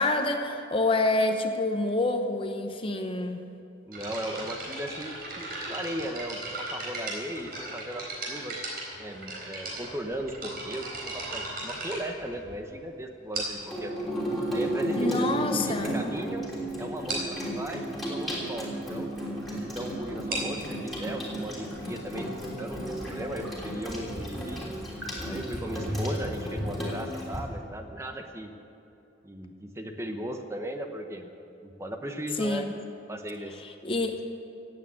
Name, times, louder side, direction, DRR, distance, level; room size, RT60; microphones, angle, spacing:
voice 1, 0.0-3.5 15.0-16.0 32.4-32.7 33.6-34.3, left 2 dB, 30° left, 6 dB, 0.8 m, -27 dB
voice 2, 3.8-8.6 9.0-10.9 11.1-13.9 14.5-15.3 15.6-16.5 16.8-19.1 19.5-24.6 25.2-28.5 29.2-31.3 31.6-32.7 33.1-33.6, equal, 15° right, 5 dB, 0.9 m, -37 dB
sound 1, 3.9-12.7 13.3-13.8 14.6-14.7 15.3-15.4 15.7-15.9 16.2-16.3 16.6-16.7 17.1-17.4 20.1-23.5, right 2 dB, 50° right, 4.1 m, -37 dB
Water tap faucet / Sink (filling or washing), 13.6-27.4, right 1 dB, ahead, 3.3 m, -33 dB
17.0 x 8.7 x 8.2 m, 2.8 s
head